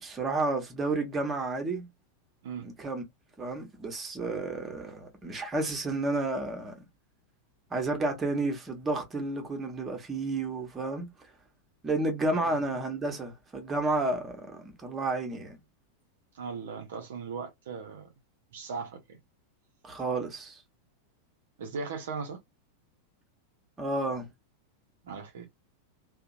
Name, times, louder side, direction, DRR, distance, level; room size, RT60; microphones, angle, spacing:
voice 1, 0.0-1.9 2.6-3.0 3.4-6.7 7.7-11.1 11.8-15.6 19.8-20.6 23.8-24.3, right 2 dB, 15° right, 0.9 m, -31 dB
voice 2, 16.3-18.1 18.5-19.0 21.6-22.4 25.0-25.5, right 5 dB, 60° right, 0.5 m, -38 dB
2.7 x 2.0 x 2.5 m
figure-of-eight pair, 90°, 0 cm